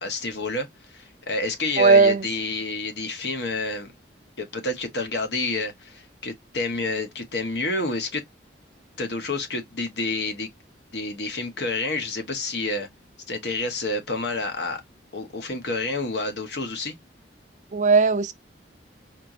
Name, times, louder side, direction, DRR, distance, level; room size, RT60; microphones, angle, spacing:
voice 1, 0.0-3.9 4.4-8.2 9.0-10.5 10.9-12.9 13.3-14.8 15.1-16.9, left 2 dB, 65° left, 1.1 m, -29 dB
voice 2, 1.8-2.2 17.7-18.3, right 4 dB, 40° right, 0.5 m, -17 dB
4.3 x 3.0 x 2.6 m
head